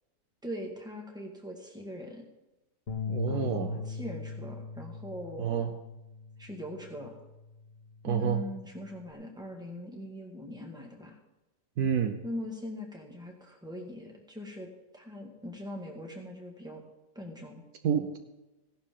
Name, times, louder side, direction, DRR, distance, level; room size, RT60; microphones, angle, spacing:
voice 1, 0.4-2.2 3.3-5.5 6.4-7.2 8.0-11.2 12.2-14.7 14.9-16.8 17.1-17.6, left 1 dB, 5° right, 1 dB, 1.6 m, -41 dB
sound 1, 2.9-9.1, left 5 dB, 40° left, 1.2 m, -40 dB
voice 2, 3.1-3.8 5.4-5.7 8.0-8.4 11.8-12.2 17.8-18.2, right 8 dB, 70° right, 7 dB, 1.3 m, -29 dB
16.0 x 11.5 x 3.8 m, 1.0 s
omnidirectional pair, 1.8 m